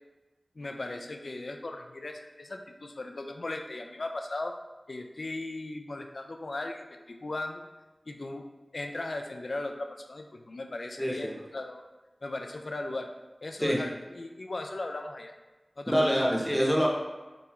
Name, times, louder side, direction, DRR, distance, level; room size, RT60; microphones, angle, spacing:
voice 1, 0.6-4.5 4.9-7.6 8.1-8.5 8.7-11.8 12.2-13.1 13.4-15.3 15.8-16.1, left 2 dB, 70° left, 4 dB, 0.3 m, -37 dB
voice 2, 11.0-11.3 13.6-13.8 15.9-16.9, equal, ahead, -2 dB, 0.8 m, -25 dB
3.7 x 2.5 x 2.9 m, 1.2 s
wide cardioid pair, 55°, 0 cm